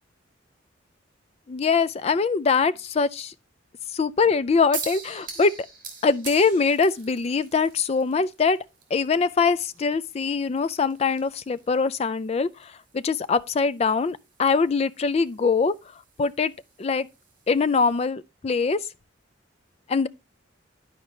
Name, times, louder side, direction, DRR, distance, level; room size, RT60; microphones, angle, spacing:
voice 1, 1.5-3.3 3.9-5.5 6.0-8.6 8.9-12.5 12.9-15.7 16.2-16.5 16.8-17.1 17.5-18.8 19.9-20.1, left 4 dB, 30° left, 0.3 m, -23 dB
sound 1, 4.7-18.1, right 5 dB, 45° right, 2.1 m, -44 dB
11.0 x 5.0 x 3.2 m
head